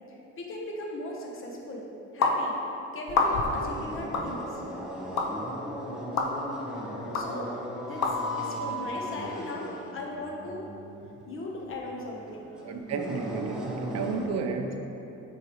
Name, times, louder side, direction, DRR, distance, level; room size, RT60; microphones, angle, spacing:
voice 1, 0.4-1.8 2.1-2.5 2.9-4.6 6.7-6.8 7.1-7.5 7.8-10.7 11.3-12.5, left 2 dB, 45° left, -1 dB, 1.1 m, -37 dB
sound 1, 2.2-2.4 3.1-3.6 4.1-4.3 5.2-5.3 6.2-6.3 7.1-7.3 8.0-8.1, left 4 dB, 65° left, 0.7 m, -25 dB
sound 2, 3.2-14.3, equal, 5° right, 1.0 m, -37 dB
voice 2, 12.6-14.8, right 5 dB, 60° right, 4 dB, 0.6 m, -32 dB
8.2 x 4.8 x 3.1 m, 2.9 s
cardioid pair, 115°, 29 cm